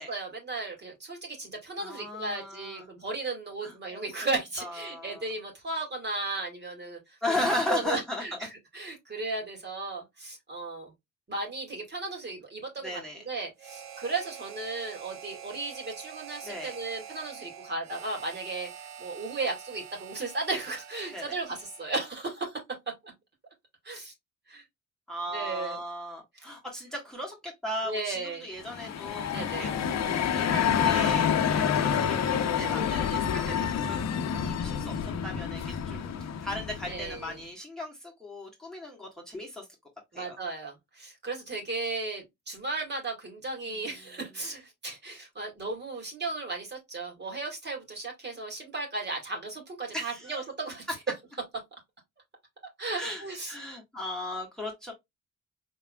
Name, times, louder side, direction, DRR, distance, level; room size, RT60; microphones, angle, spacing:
voice 1, 0.0-7.0 7.7-10.9 11.3-18.7 19.0-22.6 23.0-23.1 23.8-24.1 24.5-24.6 25.3-25.8 26.4-26.5 27.8-28.5 29.3-29.8 36.9-37.4 40.1-50.9 52.8-53.5, right 3 dB, 35° right, 2.2 m, -35 dB
voice 2, 1.8-2.9 3.6-4.0 4.6-5.3 7.2-8.4 12.8-13.2 16.4-16.7 21.1-21.3 25.1-39.7 40.1-40.4 49.9-50.4 53.0-54.9, left 1 dB, ahead, 1.6 m, -36 dB
Harmonica, 13.6-22.2, right 8 dB, 65° right, 0.8 m, -46 dB
sound 1, 28.6-37.3, left 8 dB, 60° left, 0.8 m, -28 dB
4.7 x 3.5 x 2.3 m
cardioid pair, 90°, 30 cm